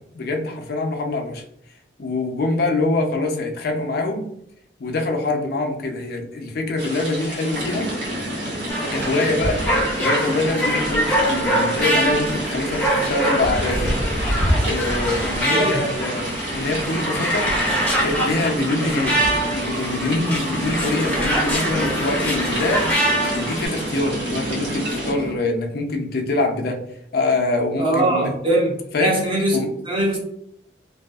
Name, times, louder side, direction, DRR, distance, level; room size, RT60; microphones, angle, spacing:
voice 1, 0.0-1.4 2.0-4.3 4.8-7.9 8.9-14.0 14.6-17.5 18.0-19.2 19.5-26.8 27.1-28.4 28.9-29.2 29.5-29.7, left 2 dB, 60° left, 3 dB, 0.5 m, -24 dB
sound 1, 6.8-25.1, right 1 dB, 90° right, 1.0 m, -33 dB
sound 2, 7.5-25.3, right 1 dB, 65° right, 0.7 m, -30 dB
sound 3, 8.7-23.7, right 1 dB, 10° left, 0.6 m, -24 dB
voice 2, 27.8-28.7 29.0-29.6 29.9-30.2, right 1 dB, 30° right, -1 dB, 0.7 m, -21 dB
2.6 x 2.3 x 2.3 m, 0.71 s
head